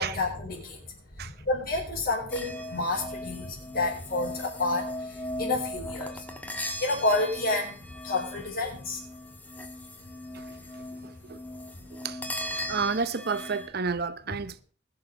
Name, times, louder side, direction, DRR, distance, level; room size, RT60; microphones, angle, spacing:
voice 1, 0.0-9.0 10.5-10.6 11.8-11.9 12.6-12.7, left 2 dB, 50° left, 4.6 m, -30 dB
sound 1, 2.3-13.7, left 1 dB, 10° left, 1.4 m, -38 dB
voice 2, 11.0-11.4 11.9-12.2 12.7-14.6, right 5 dB, 50° right, 0.8 m, -31 dB
21.0 x 6.9 x 5.3 m
head